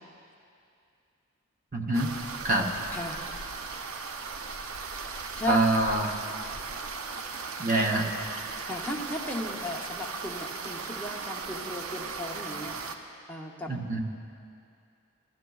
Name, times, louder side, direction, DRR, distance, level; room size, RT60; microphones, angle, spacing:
voice 1, 1.7-2.1 2.4-2.7 5.5-6.1 7.6-8.1 13.7-14.0, right 2 dB, 40° right, 2 dB, 0.7 m, -25 dB
sound 1, 1.9-13.0, right 4 dB, 85° right, 0.6 m, -37 dB
voice 2, 2.9-3.2 5.4-5.6 8.6-12.7 13.3-13.7, left 2 dB, 10° left, -2 dB, 0.7 m, -35 dB
15.0 x 12.0 x 2.3 m, 2.5 s
head